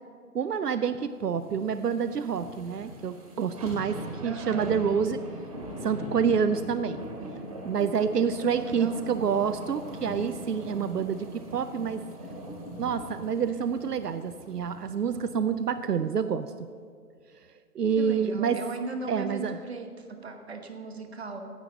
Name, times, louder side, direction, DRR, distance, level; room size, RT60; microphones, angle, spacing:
voice 1, 0.3-5.2 5.8-7.0 7.6-12.0 12.8-16.5 17.7-18.6 19.1-19.6, right 6 dB, 80° right, 11 dB, 0.6 m, -28 dB
sound 1, 1.3-15.7 16.2-16.3, right 1 dB, 25° right, 1.5 m, -41 dB
voice 2, 4.2-4.8 8.4-9.0 18.0-21.4, right 3 dB, 40° right, 5 dB, 1.2 m, -38 dB
15.5 x 9.1 x 3.9 m, 2.1 s
figure-of-eight pair, 160°, 47 cm